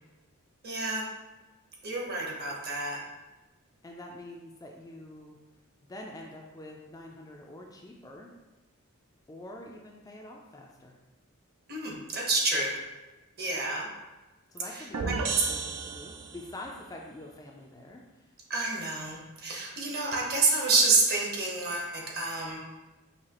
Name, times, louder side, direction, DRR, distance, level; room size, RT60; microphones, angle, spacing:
voice 1, 0.6-1.1 1.8-3.0 11.7-12.8 13.4-13.9 14.7-15.5 18.5-22.6, right 3 dB, 45° right, -2 dB, 1.0 m, -28 dB
voice 2, 3.8-5.4 5.8-8.3 9.3-11.0 14.5-18.3, left 1 dB, 15° left, 0 dB, 0.3 m, -46 dB
sound 1, 14.9-16.6, right 4 dB, 80° right, 0.5 m, -33 dB
5.6 x 2.8 x 2.9 m, 1.1 s
head